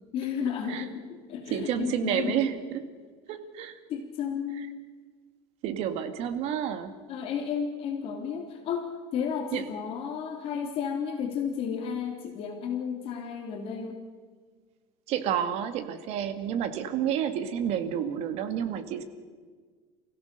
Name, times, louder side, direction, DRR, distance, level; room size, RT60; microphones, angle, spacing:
voice 1, 0.1-2.4 3.9-4.8 7.1-14.0, left 7 dB, 45° left, 2 dB, 3.0 m, -32 dB
voice 2, 1.5-2.8 3.3-3.8 5.6-6.9 9.5-9.7 15.1-19.0, right 9 dB, 55° right, 9 dB, 2.1 m, -30 dB
29.0 x 16.5 x 6.7 m, 1.5 s
cardioid pair, 155°, 13 cm